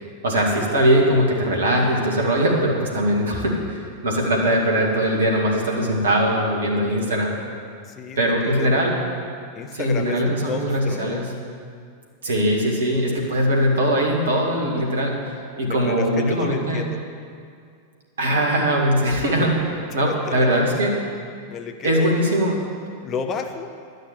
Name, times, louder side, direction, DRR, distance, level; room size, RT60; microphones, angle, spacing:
voice 1, 0.2-7.3 8.2-8.9 9.7-11.2 12.2-15.1 15.6-16.8 18.2-19.6 19.9-20.9 21.8-22.6, equal, 65° right, -1 dB, 2.3 m, -21 dB
voice 2, 7.8-8.7 9.5-11.3 15.6-17.1 19.9-20.9 21.5-22.1 23.0-23.7, left 5 dB, 30° left, 6 dB, 0.9 m, -32 dB
11.5 x 6.6 x 9.2 m, 2.2 s
figure-of-eight pair, 90°, 0 cm